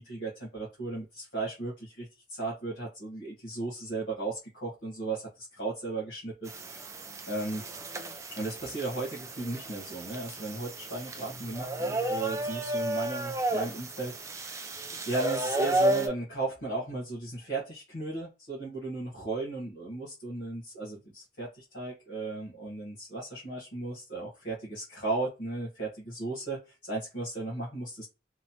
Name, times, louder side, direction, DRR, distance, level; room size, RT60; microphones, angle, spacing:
voice 1, 0.0-5.3 5.6-6.9 7.2-7.6 8.4-28.1, right 3 dB, 65° left, -5 dB, 1.0 m, -36 dB
sound 1, 6.5-16.1, right 1 dB, 15° right, 0.3 m, -33 dB
sound 2, 11.1-13.7, left 1 dB, 40° left, 1.0 m, -49 dB
2.9 x 2.0 x 2.7 m, 0.29 s
head